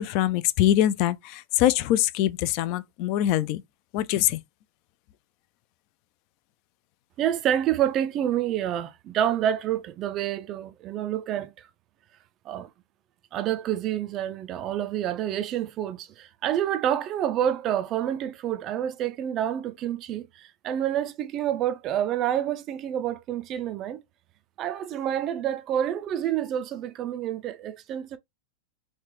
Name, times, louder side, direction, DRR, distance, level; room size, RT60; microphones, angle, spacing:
voice 1, 0.0-3.6 3.9-4.4, left 13 dB, 45° left, 0.3 m, -23 dB
voice 2, 7.2-11.7 12.5-12.7 13.3-24.0 24.6-28.2, right 10 dB, 35° right, 0.3 m, -28 dB
3.2 x 3.1 x 3.0 m
figure-of-eight pair, 90°, 0 cm